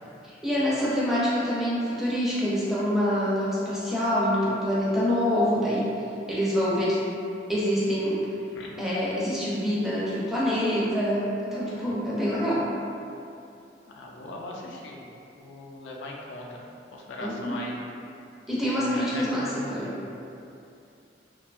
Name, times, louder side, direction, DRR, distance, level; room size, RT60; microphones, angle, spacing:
voice 1, 0.2-5.9 6.3-7.0 7.5-8.3 8.8-12.7 17.2-17.6 18.5-19.9, equal, ahead, -8 dB, 0.4 m, -26 dB
voice 2, 13.9-15.0 15.4-16.6 16.9-17.8 18.7-20.0, left 2 dB, 85° left, -2 dB, 0.4 m, -39 dB
2.7 x 2.3 x 2.3 m, 2.6 s
head